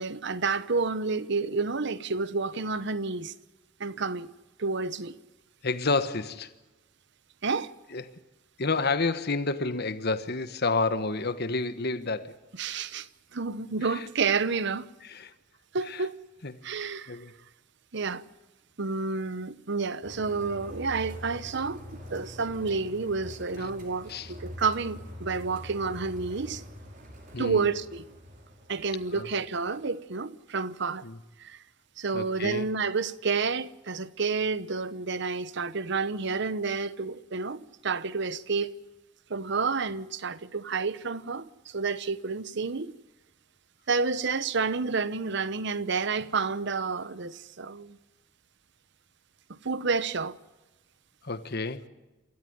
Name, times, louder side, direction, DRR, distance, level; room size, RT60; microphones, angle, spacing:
voice 1, 0.0-3.3 3.8-4.3 4.6-5.1 7.4-7.7 12.6-14.9 15.7-16.1 16.6-17.2 17.9-18.2 18.8-21.8 22.1-26.6 27.4-28.0 28.7-31.0 31.4-31.6 32.0-38.7 39.3-42.9 43.9-48.0 49.5-50.4, right 4 dB, 60° right, 0.9 m, -30 dB
voice 2, 5.6-6.5 7.9-8.2 8.6-12.4 13.8-14.1 15.0-15.3 15.9-16.0 16.4-16.5 17.1-17.3 23.6-23.7 24.1-24.3 27.3-27.7 29.1-29.3 31.0-31.2 32.1-32.7 51.2-51.9, left 3 dB, 50° left, 1.3 m, -30 dB
sound 1, 20.0-29.8, equal, 40° right, 5.9 m, -44 dB
27.5 x 13.5 x 9.4 m
head